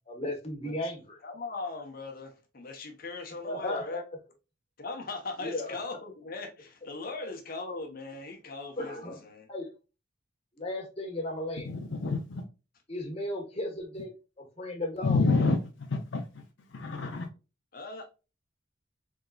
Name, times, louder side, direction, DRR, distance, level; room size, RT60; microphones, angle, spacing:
voice 1, 0.0-1.2 3.4-4.0 5.4-5.8 8.8-9.2 9.5-9.7 10.6-11.7 12.9-15.2, left 1 dB, 30° left, 1.3 m, -35 dB
voice 2, 1.2-4.0 4.8-9.5 17.7-18.1, left 3 dB, 50° left, 0.9 m, -39 dB
voice 3, 11.7-12.4 15.0-16.3 16.7-17.3, left 3 dB, 75° left, 0.6 m, -28 dB
3.9 x 3.6 x 2.3 m
head